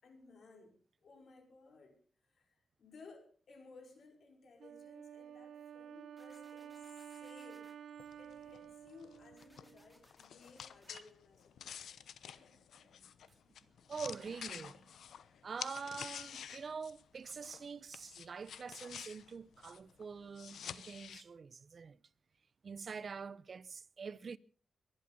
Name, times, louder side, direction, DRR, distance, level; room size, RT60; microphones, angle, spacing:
voice 1, 0.0-7.7 8.2-11.9, left 4 dB, 70° left, 5.2 m, -59 dB
Wind instrument woodwind instrument, 4.6-10.0, right 8 dB, 80° right, 0.9 m, -51 dB
sound 1, 6.2-7.8 9.4-10.9, equal, 5° left, 2.6 m, -67 dB
sound 2, 8.0-17.7 17.9-21.2, left 8 dB, 90° left, 1.0 m, -49 dB
voice 2, 12.2-12.6 13.0-13.3 13.9-15.0 15.4-22.0 22.6-24.4, right 5 dB, 55° right, 0.8 m, -46 dB
22.5 x 11.5 x 5.4 m
cardioid pair, 90°, 0 cm